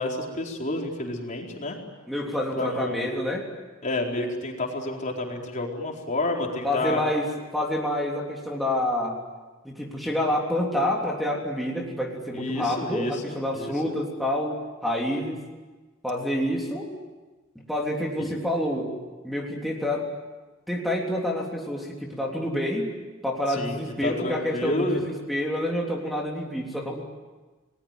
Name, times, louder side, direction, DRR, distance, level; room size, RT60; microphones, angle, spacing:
voice 1, 0.0-1.8 2.6-3.1 3.8-7.0 12.3-13.9 18.2-18.4 23.5-23.8 24.0-25.1, left 2 dB, 40° left, 0 dB, 4.4 m, -30 dB
voice 2, 2.1-3.5 6.6-9.2 9.6-15.4 16.0-16.9 17.7-18.9 19.2-20.1 20.7-22.9 23.2-27.0, left 1 dB, ahead, -2 dB, 3.4 m, -28 dB
30.0 x 20.5 x 9.1 m, 1.3 s
head